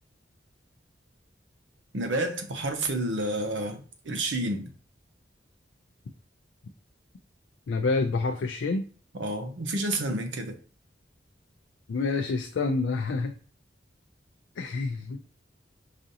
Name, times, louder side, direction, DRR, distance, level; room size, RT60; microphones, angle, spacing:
voice 1, 1.9-4.7 9.2-10.5, right 1 dB, 90° right, 0.7 m, -30 dB
voice 2, 7.7-8.8 11.9-13.3 14.6-15.2, left 3 dB, 80° left, 0.4 m, -27 dB
4.9 x 2.5 x 2.7 m
head